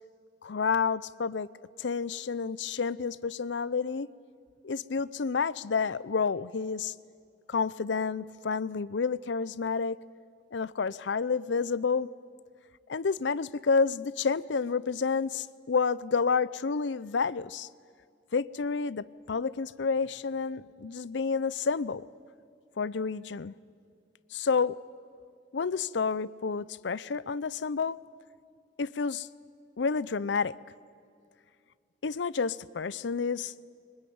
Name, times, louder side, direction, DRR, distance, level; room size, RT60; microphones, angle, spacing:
voice 1, 0.4-1.5 1.8-4.1 4.6-6.9 7.5-10.0 10.5-12.1 12.9-17.7 18.3-22.1 22.8-23.5 24.3-24.8 25.5-28.0 28.8-29.3 29.8-30.6 32.0-33.5, left 5 dB, 85° left, 0.6 m, -29 dB
24.0 x 20.0 x 9.5 m
head